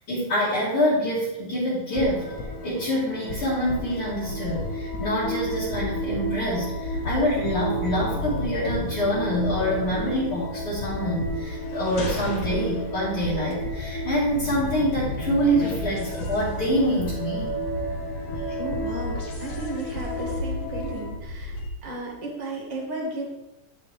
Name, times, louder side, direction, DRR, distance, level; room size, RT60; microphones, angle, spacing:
voice 1, 0.1-2.3 2.6-17.5, equal, 50° left, -11 dB, 3.0 m, -26 dB
sound 1, 1.9-21.1, equal, 70° left, 0.8 m, -32 dB
sound 2, 3.5-21.7, left 2 dB, 85° left, 2.4 m, -36 dB
voice 2, 18.6-21.6 21.8-23.2, right 2 dB, 20° right, -2 dB, 1.4 m, -34 dB
10.5 x 6.0 x 3.3 m, 0.96 s
omnidirectional pair, 3.3 m